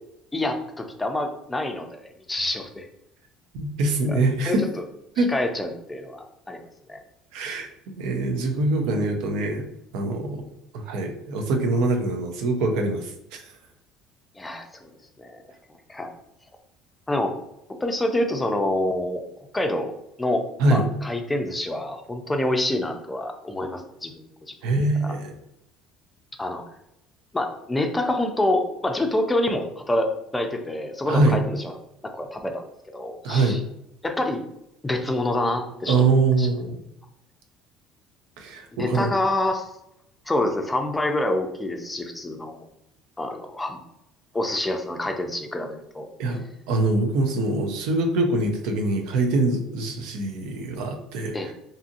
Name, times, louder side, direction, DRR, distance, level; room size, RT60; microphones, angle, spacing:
voice 1, 0.3-2.9 4.1-4.2 4.5-4.6 5.2-6.6 6.9-7.0 14.4-14.9 15.2-15.4 15.9-16.1 17.1-17.3 17.8-19.2 19.5-19.9 20.2-20.4 20.7-24.5 25.0-25.1 26.4-26.6 27.3-31.8 32.0-32.7 32.9-33.6 34.0-34.4 34.8-36.1 36.4-36.5 38.8-39.7 40.3-42.6 43.2-43.8 44.3-46.1 51.3-51.5, left 1 dB, 10° left, 4 dB, 0.4 m, -27 dB
voice 2, 3.5-4.6 5.2-5.3 7.3-9.6 9.9-10.4 10.7-13.5 20.6-20.9 24.6-25.3 31.1-31.4 33.2-33.6 35.9-36.8 38.4-39.1 46.2-51.5, right 2 dB, 75° right, 4 dB, 0.5 m, -24 dB
2.6 x 2.6 x 2.5 m, 0.82 s
cardioid pair, 110°, 0 cm